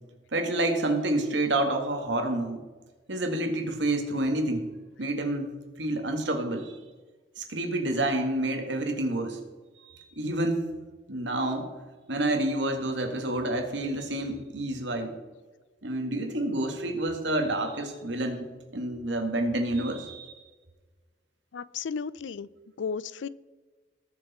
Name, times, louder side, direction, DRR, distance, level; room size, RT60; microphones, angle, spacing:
voice 1, 0.3-2.6 3.1-4.6 5.0-5.5 5.8-6.7 7.4-9.4 9.8-10.7 11.1-11.7 12.1-15.2 15.8-20.4, right 1 dB, 75° right, 4 dB, 2.1 m, -28 dB
voice 2, 21.5-22.5 22.8-23.3, left 6 dB, 90° left, 20 dB, 0.5 m, -34 dB
19.5 x 6.8 x 4.4 m, 1.3 s
head